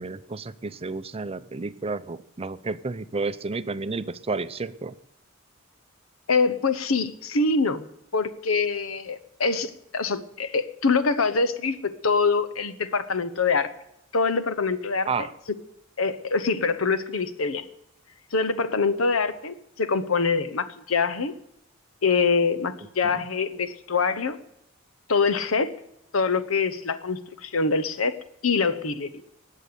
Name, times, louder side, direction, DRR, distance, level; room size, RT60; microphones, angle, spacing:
voice 1, 0.0-4.9 15.1-15.3, right 3 dB, 30° right, 14 dB, 0.6 m, -31 dB
voice 2, 6.3-7.9 8.1-13.7 14.1-15.1 16.0-17.6 18.3-21.3 22.0-24.4 25.1-25.7 26.1-28.2 28.4-29.1, left 4 dB, 85° left, 13 dB, 1.0 m, -24 dB
19.5 x 7.5 x 6.8 m, 0.82 s
head